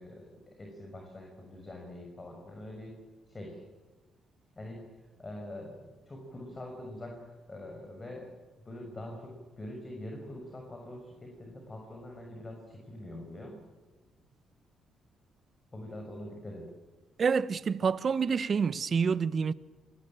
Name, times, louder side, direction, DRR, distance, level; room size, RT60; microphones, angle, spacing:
voice 1, 0.0-3.0 3.3-3.6 4.5-4.8 5.2-5.8 6.1-8.2 8.6-13.6 15.7-16.7, left 1 dB, 25° left, 6.0 m, -44 dB
voice 2, 17.2-19.5, right 6 dB, 45° right, 0.9 m, -27 dB
26.5 x 20.0 x 9.0 m
cardioid pair, 90°, 0 cm